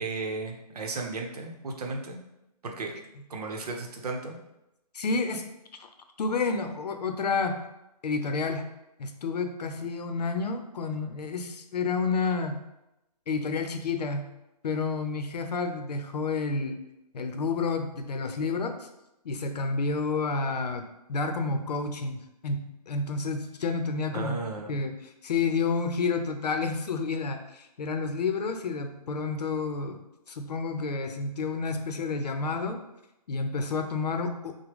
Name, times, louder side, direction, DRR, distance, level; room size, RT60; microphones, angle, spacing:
voice 1, 0.0-2.2 2.6-3.0 3.3-4.4 24.1-24.8, right 3 dB, 70° right, 2 dB, 0.9 m, -34 dB
voice 2, 4.9-5.5 6.2-7.6 8.0-8.7 9.0-12.6 13.3-14.3 14.6-16.8 17.1-18.9 19.2-24.3 24.7-24.9 25.2-30.0 30.3-32.8 33.3-34.5, left 4 dB, 75° left, 6 dB, 0.7 m, -30 dB
6.0 x 2.2 x 3.5 m, 0.91 s
hypercardioid pair, 170°, 21 cm